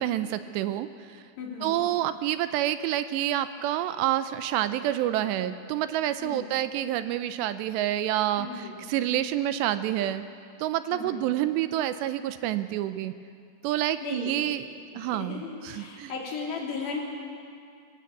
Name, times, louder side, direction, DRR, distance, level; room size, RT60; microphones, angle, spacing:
voice 1, 0.0-1.2 1.6-10.3 10.6-13.1 13.6-14.6 15.0-16.1, right 13 dB, 80° right, 11 dB, 2.7 m, -28 dB
voice 2, 1.4-1.9 6.2-6.5 8.4-8.8 10.9-11.3 14.0-14.6 14.9-17.1, left 4 dB, 70° left, -2 dB, 5.5 m, -36 dB
24.0 x 15.0 x 8.5 m, 2.2 s
omnidirectional pair, 5.1 m